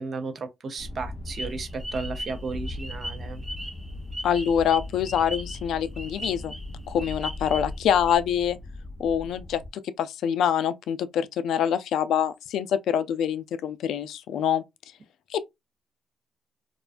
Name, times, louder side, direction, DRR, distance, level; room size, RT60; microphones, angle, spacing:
voice 1, 0.0-3.4, right 4 dB, 50° right, 0.6 m, -34 dB
sound 1, 0.8-9.7, left 2 dB, 30° left, 0.5 m, -38 dB
sound 2, 1.3-7.8 8.1-8.2, equal, 10° right, 0.9 m, -38 dB
voice 2, 4.2-6.5 6.9-8.6 9.0-14.6 15.3-15.4, left 8 dB, 75° left, 0.3 m, -25 dB
2.4 x 2.2 x 2.4 m
cardioid pair, 90°, 0 cm